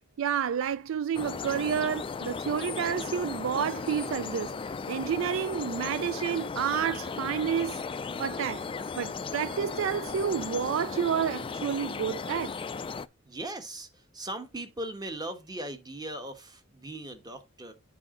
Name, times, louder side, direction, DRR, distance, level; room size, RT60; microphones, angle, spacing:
voice 1, 0.2-7.8 8.2-8.7 9.0-12.5, right 8 dB, 65° right, 0.3 m, -30 dB
sound 1, 1.1-13.1, left 5 dB, 25° left, 0.3 m, -36 dB
voice 2, 13.2-17.7, right 1 dB, 20° right, 1.2 m, -39 dB
8.4 x 5.0 x 3.7 m
head